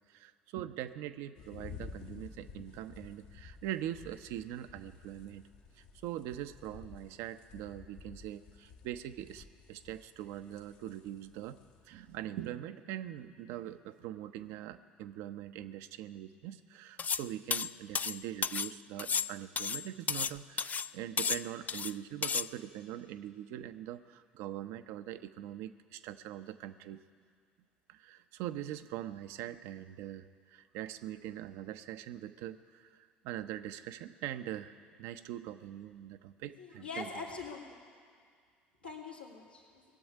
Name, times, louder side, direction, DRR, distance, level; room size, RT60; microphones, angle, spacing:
voice 1, 0.1-5.4 5.8-11.6 11.9-27.0 27.9-37.1, right 12 dB, 60° right, 11 dB, 0.6 m, -42 dB
sound 1, 1.4-12.5, left 5 dB, 60° left, 1.2 m, -53 dB
sound 2, 17.0-17.3 17.5-18.7 19.0-20.3 20.6-20.9 21.2-21.9 22.2-22.5, left 6 dB, 30° left, 0.3 m, -33 dB
voice 2, 36.6-37.8 38.8-39.8, left 4 dB, 85° left, -3 dB, 2.1 m, -43 dB
18.5 x 7.8 x 9.6 m, 2.1 s
figure-of-eight pair, 60°, 5 cm